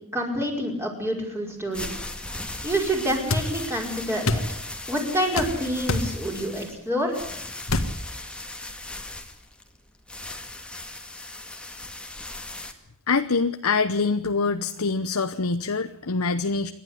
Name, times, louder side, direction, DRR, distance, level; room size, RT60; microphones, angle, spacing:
voice 1, 0.1-1.9 2.6-4.4 4.9-7.2, equal, 10° right, 0 dB, 5.4 m, -27 dB
sound 1, 1.5-12.7, left 2 dB, 5° left, 2.0 m, -38 dB
sound 2, 3.3-3.5 4.3-4.5 5.4-5.5 5.9-6.1 7.7-7.9, left 2 dB, 60° left, 1.8 m, -24 dB
voice 2, 13.1-16.7, left 4 dB, 75° left, 9 dB, 0.9 m, -24 dB
28.0 x 12.0 x 9.9 m, 0.76 s
head